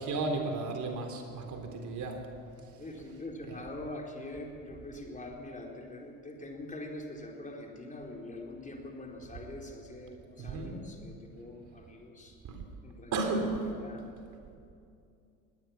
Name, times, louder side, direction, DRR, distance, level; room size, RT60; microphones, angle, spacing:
voice 1, 0.0-2.3 10.4-10.8 12.4-12.6 13.1-13.6, right 3 dB, 40° right, 5 dB, 3.5 m, -33 dB
voice 2, 2.8-12.4 12.8-13.3 13.6-14.1, left 1 dB, 15° left, 0 dB, 4.0 m, -44 dB
22.0 x 18.0 x 7.1 m, 2.5 s
figure-of-eight pair, 65°, 45 cm